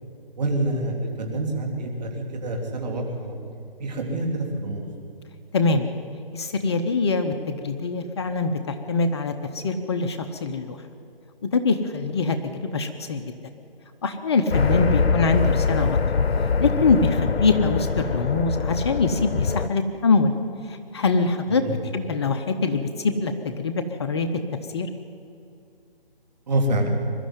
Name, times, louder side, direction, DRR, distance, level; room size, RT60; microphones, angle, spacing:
voice 1, 0.4-3.4 3.8-4.9 14.7-14.8 21.6-21.7 26.5-26.9, right 1 dB, 45° right, 2 dB, 3.5 m, -27 dB
voice 2, 5.5-5.9 6.3-10.8 11.5-13.3 14.0-16.0 16.6-20.3 20.7-24.3 24.7-24.9, left 4 dB, 30° left, 7 dB, 0.8 m, -24 dB
sound 1, 14.5-19.7, left 5 dB, 90° left, 0.7 m, -23 dB
22.5 x 12.5 x 9.3 m, 2.5 s
figure-of-eight pair, 155°, 30 cm